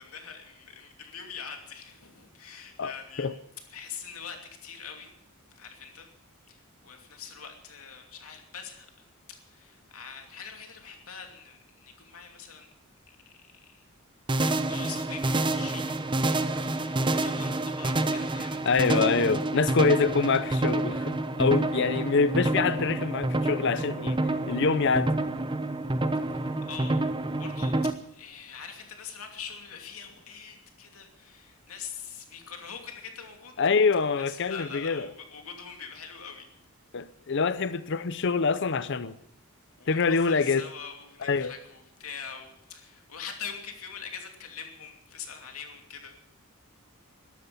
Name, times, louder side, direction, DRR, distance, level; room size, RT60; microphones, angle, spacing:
voice 1, 0.0-3.3 3.7-5.1 5.5-6.1 6.5-9.0 9.5-12.7 13.1-13.2 13.7-13.8 14.3-16.1 16.4-18.7 26.1-26.3 26.7-27.8 28.1-33.5 34.2-36.5 39.8-46.1, left 6 dB, 75° left, 3 dB, 2.8 m, -43 dB
sound 1, 14.3-27.9, right 2 dB, 20° right, 0.7 m, -28 dB
voice 2, 18.6-24.2 24.5-25.1 33.6-35.1 36.9-39.2 39.9-40.6 41.2-41.5, left 4 dB, 55° left, 14 dB, 0.6 m, -25 dB
13.0 x 12.5 x 7.1 m, 0.72 s
head